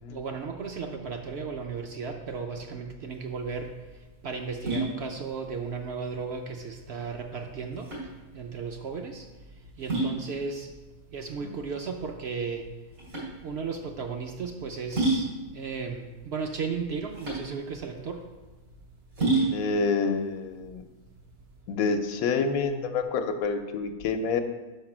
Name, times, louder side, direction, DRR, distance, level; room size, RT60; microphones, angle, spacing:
voice 1, 0.1-3.7 4.2-7.9 8.3-9.3 9.8-10.7 11.1-12.7 13.4-18.2, right 5 dB, 65° right, 4 dB, 0.7 m, -35 dB
sound 1, 3.1-21.6, right 3 dB, 90° right, 3.0 m, -33 dB
voice 2, 19.5-20.8 21.7-24.4, left 4 dB, 80° left, 7 dB, 1.1 m, -27 dB
5.3 x 5.0 x 6.0 m, 1.2 s
omnidirectional pair, 1.5 m